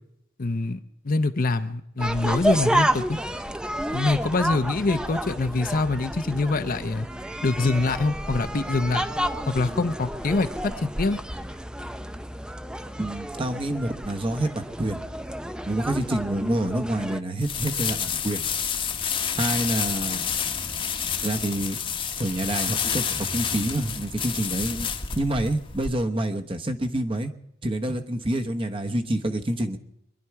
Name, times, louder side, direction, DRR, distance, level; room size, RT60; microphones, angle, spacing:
voice 1, 0.4-0.8 1.0-3.2 3.9-7.1 7.4-9.0 9.5-11.2, left 3 dB, 45° left, 10 dB, 0.7 m, -24 dB
sound 1, 2.0-17.2, right 1 dB, 5° right, 0.5 m, -30 dB
voice 2, 13.0-15.0 15.7-18.4 19.4-20.2 21.2-21.8 22.2-24.9 25.2-27.3 27.6-29.8, right 1 dB, 25° right, 6 dB, 1.0 m, -27 dB
sound 2, 17.4-25.9, left 7 dB, 25° left, 1.0 m, -29 dB
24.0 x 11.0 x 4.7 m, 0.79 s
head